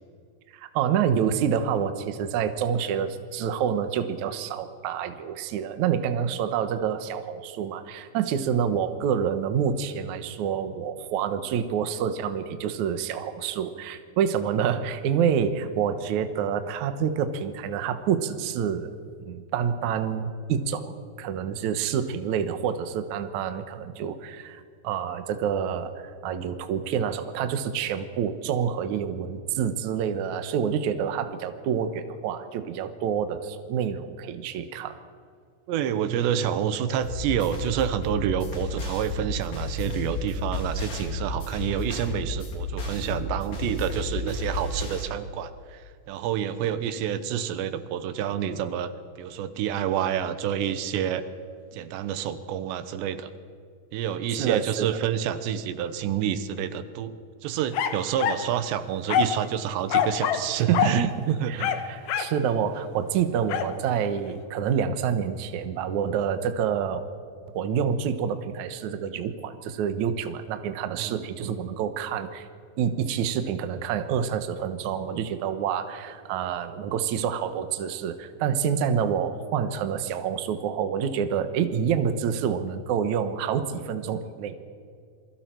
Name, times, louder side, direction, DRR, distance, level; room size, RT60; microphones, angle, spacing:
voice 1, 0.5-18.9 19.2-35.0 54.3-55.0 60.7-61.1 61.5-67.0 67.5-72.5 72.8-84.6, right 8 dB, 65° right, 9 dB, 1.9 m, -27 dB
voice 2, 35.7-45.8 46.1-48.9 49.2-51.2 51.7-53.3 53.9-57.1 57.4-61.8 71.0-71.6, right 9 dB, 85° right, 11 dB, 3.3 m, -28 dB
sound 1, 37.0-45.0, left 2 dB, 50° left, 4.6 m, -32 dB
dog barking in the distance, 57.7-58.5 59.1-59.4 59.9-60.5 60.7-61.0 61.6-62.4 63.5-63.7, left 9 dB, 75° left, 1.7 m, -25 dB
27.5 x 23.5 x 4.6 m, 2.2 s
omnidirectional pair, 4.9 m